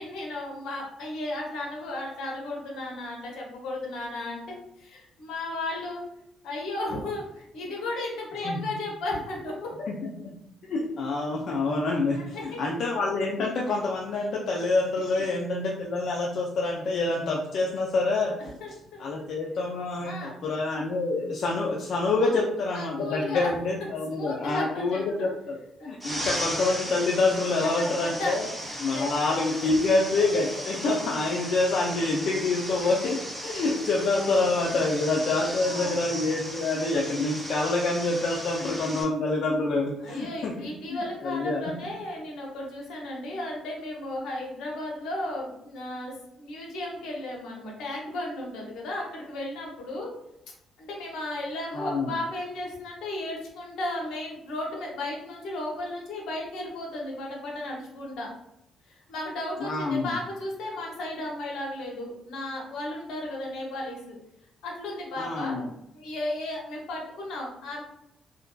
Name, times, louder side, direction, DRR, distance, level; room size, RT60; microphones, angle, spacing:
voice 1, 0.0-6.1 6.4-9.7 12.2-12.6 18.6-19.0 20.0-20.3 22.1-22.4 22.7-23.5 24.1-25.3 25.8-25.9 27.6-28.4 28.9-29.1 29.7-29.8 34.1-34.3 34.8-34.9 35.3-35.9 40.0-50.1 50.8-58.3 58.9-64.2 64.6-65.6 65.9-67.8, left 1 dB, 85° left, -2 dB, 0.7 m, -34 dB
voice 2, 10.6-18.5 19.0-25.6 25.8-28.5 28.8-41.7 51.7-52.2 59.6-60.1 65.2-65.7, left 3 dB, 65° left, -2 dB, 0.3 m, -27 dB
sound 1, 26.0-39.0, equal, 5° right, 0.8 m, -36 dB
2.5 x 2.1 x 2.3 m, 0.81 s
cardioid pair, 90°, 0 cm